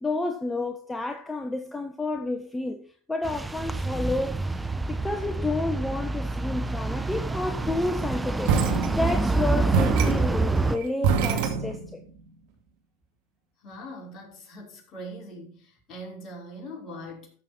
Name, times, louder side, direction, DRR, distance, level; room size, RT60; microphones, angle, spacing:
voice 1, 0.0-4.6 4.9-8.5 8.9-12.0, left 2 dB, 10° left, 1.3 m, -30 dB
sound 1, 3.2-10.8, right 3 dB, 10° right, 0.9 m, -27 dB
sound 2, 8.5-9.4 9.7-12.1, right 6 dB, 65° right, 2.4 m, -26 dB
voice 2, 13.6-17.3, equal, 40° left, 5.5 m, -41 dB
14.5 x 6.9 x 4.4 m
hypercardioid pair, 90°, 0 cm